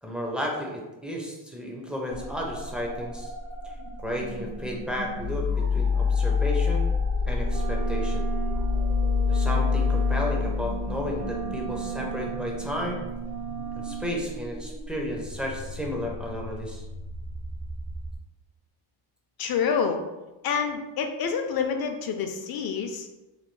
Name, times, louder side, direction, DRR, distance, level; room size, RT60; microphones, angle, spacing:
voice 1, 0.0-3.3 3.6-3.7 4.0-6.9 7.3-8.2 9.3-13.0 13.8-16.8, equal, ahead, -1 dB, 0.4 m, -33 dB
sound 1, 2.1-18.2, left 4 dB, 70° right, 1.2 m, -29 dB
Wind instrument woodwind instrument, 7.4-14.3, right 8 dB, 55° right, 0.7 m, -35 dB
voice 2, 19.4-20.0 20.4-23.1, left 6 dB, 55° left, 5 dB, 0.5 m, -27 dB
3.2 x 2.2 x 3.0 m, 1.1 s
cardioid pair, 125°, 46 cm